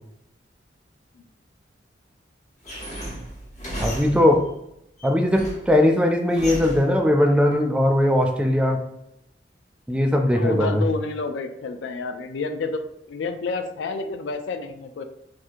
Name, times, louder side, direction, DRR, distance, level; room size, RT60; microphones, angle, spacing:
sound 1, 2.6-4.5 5.0-5.8 6.3-7.0, equal, 40° left, 1.1 m, -34 dB
voice 1, 3.8-4.4 5.0-8.8 9.9-10.9, left 1 dB, 5° right, 3 dB, 0.3 m, -19 dB
voice 2, 10.3-15.0, left 3 dB, 80° left, 8 dB, 0.4 m, -29 dB
3.6 x 2.7 x 2.5 m, 0.78 s
head